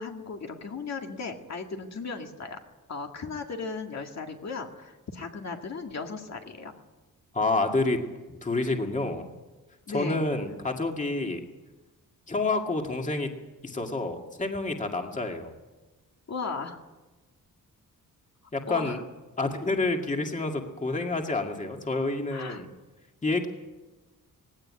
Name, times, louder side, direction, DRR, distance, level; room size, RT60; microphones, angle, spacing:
voice 1, 0.0-2.6 2.9-6.8 9.9-10.3 16.3-16.8 18.7-19.0 22.3-22.6, left 4 dB, 50° left, 3 dB, 2.1 m, -36 dB
voice 2, 7.3-8.0 8.4-9.2 9.9-11.4 12.3-13.3 13.6-15.5 18.5-19.0 19.4-22.7 23.2-23.5, left 2 dB, 20° left, 3 dB, 2.2 m, -28 dB
20.0 x 17.5 x 9.8 m, 1.2 s
wide cardioid pair, 150°, 34 cm